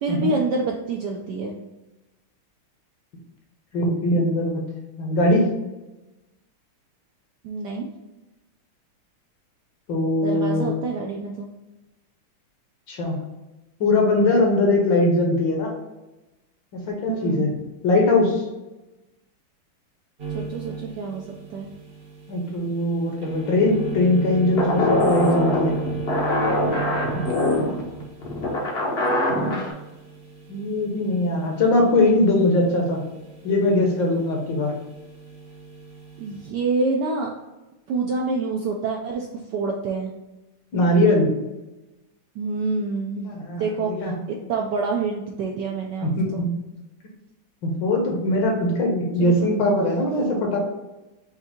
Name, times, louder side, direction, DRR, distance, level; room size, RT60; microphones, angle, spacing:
voice 1, 0.0-1.7 7.4-7.9 10.2-11.5 17.1-17.5 20.3-21.2 21.5-21.7 36.2-37.3 37.9-39.3 39.5-40.1 42.4-43.3 43.6-43.9 44.3-46.5 49.2-49.5, right 3 dB, 75° right, 0 dB, 1.0 m, -27 dB
voice 2, 3.7-4.6 5.0-5.5 9.9-10.6 12.9-13.2 13.8-15.7 16.9-17.5 17.8-18.4 22.3-25.7 30.5-33.0 33.4-34.7 40.7-41.3 43.2-44.1 46.0-46.5 47.6-50.6, left 2 dB, 65° left, 1 dB, 1.6 m, -21 dB
sound 1, 20.2-36.5, right 5 dB, 50° right, 0.8 m, -35 dB
sound 2, 24.6-29.7, left 1 dB, 45° left, 0.8 m, -23 dB
5.5 x 2.7 x 3.6 m, 1.0 s
omnidirectional pair, 2.3 m